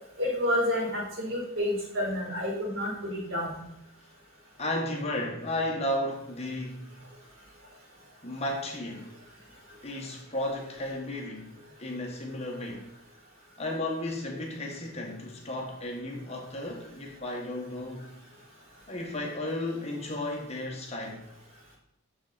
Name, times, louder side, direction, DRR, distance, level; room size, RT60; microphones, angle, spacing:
voice 1, 0.2-3.6, left 1 dB, 65° right, -3 dB, 4.5 m, -29 dB
voice 2, 4.6-7.0 8.2-9.1 9.8-12.9 13.6-18.1 18.9-21.3, left 1 dB, 30° left, 0 dB, 1.6 m, -34 dB
9.9 x 7.2 x 4.3 m, 0.78 s
head